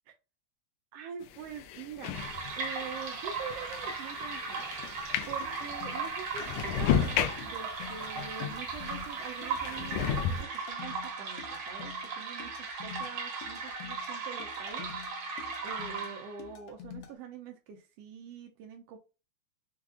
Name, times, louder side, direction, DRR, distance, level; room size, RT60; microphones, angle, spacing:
voice 1, 0.9-2.2 2.6-14.9 15.1-19.0, right 7 dB, 80° right, 4 dB, 1.4 m, -45 dB
sound 1, 1.2-9.1 9.6-10.4, left 8 dB, 90° left, 1.4 m, -34 dB
sound 2, 2.1-16.5, right 4 dB, 60° right, 1.5 m, -37 dB
sound 3, 5.4-17.1, left 8 dB, 75° left, 1.9 m, -48 dB
4.9 x 2.4 x 3.5 m, 0.31 s
omnidirectional pair, 3.3 m